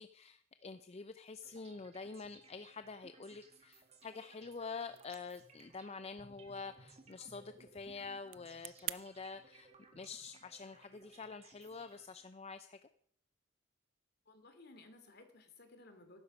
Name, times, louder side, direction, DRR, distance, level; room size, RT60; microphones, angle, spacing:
voice 1, 0.0-9.7 10.0-12.9, left 4 dB, 35° left, 11 dB, 0.5 m, -47 dB
sound 1, 1.4-12.5, right 3 dB, 35° right, 2.0 m, -62 dB
sound 2, 4.8-9.0, right 16 dB, 70° right, 0.5 m, -50 dB
voice 2, 14.3-16.2, left 2 dB, 55° left, 7 dB, 2.5 m, -58 dB
14.0 x 12.0 x 5.3 m, 0.65 s
head